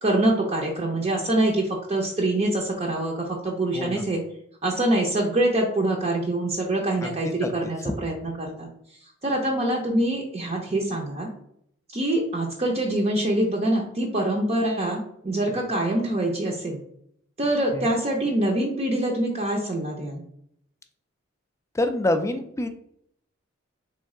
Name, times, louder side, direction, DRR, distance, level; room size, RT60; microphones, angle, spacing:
voice 1, 0.0-4.2 4.6-8.7 9.2-11.3 11.9-16.8 17.4-20.2, right 1 dB, 30° right, -1 dB, 0.6 m, -25 dB
voice 2, 21.7-22.7, left 1 dB, 15° left, 7 dB, 0.3 m, -25 dB
3.6 x 3.1 x 3.6 m, 0.70 s
head